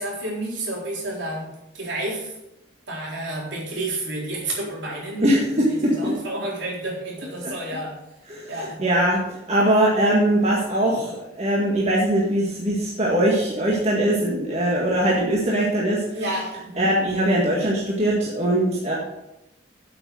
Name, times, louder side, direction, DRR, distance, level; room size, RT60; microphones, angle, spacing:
voice 1, 0.0-1.5 1.7-2.3 2.9-5.3 5.7-8.0 8.5-8.8 16.1-16.9, right 1 dB, 65° right, -3 dB, 4.0 m, -30 dB
voice 2, 5.2-5.9 8.3-16.0 16.8-18.9, right 1 dB, 35° right, -4 dB, 1.8 m, -21 dB
8.5 x 8.1 x 6.3 m, 0.88 s
head